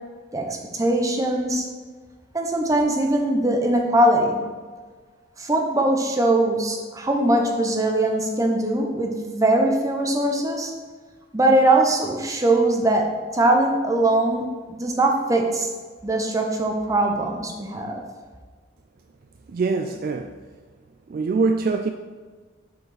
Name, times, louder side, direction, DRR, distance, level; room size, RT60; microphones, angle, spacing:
voice 1, 0.7-1.7 2.3-4.4 5.4-10.7 11.3-13.0 13.3-15.7 16.0-18.0, right 1 dB, 15° right, 1 dB, 0.8 m, -21 dB
voice 2, 19.5-20.3 21.1-21.9, right 4 dB, 50° right, 6 dB, 0.3 m, -23 dB
6.5 x 4.8 x 4.9 m, 1.5 s
head